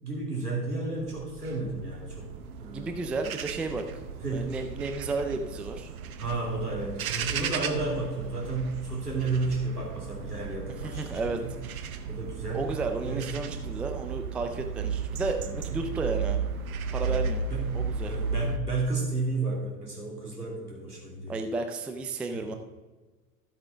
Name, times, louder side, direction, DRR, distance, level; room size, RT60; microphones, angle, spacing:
voice 1, 0.0-2.3 2.6-2.9 4.2-4.5 6.2-11.5 12.1-12.7 13.0-13.3 15.4-15.5 17.0-17.2 17.5-17.7 18.0-21.4 22.3-22.5, right 3 dB, 90° right, -3 dB, 2.8 m, -32 dB
sound 1, 0.9-18.6, right 6 dB, 65° right, 0.9 m, -34 dB
voice 2, 2.6-4.0 4.3-5.9 10.8-11.4 12.5-16.4 16.9-17.5 17.7-18.2 21.3-22.6, right 3 dB, 5° right, 6 dB, 0.3 m, -33 dB
13.5 x 7.9 x 3.6 m, 1.3 s
figure-of-eight pair, 80°, 45 cm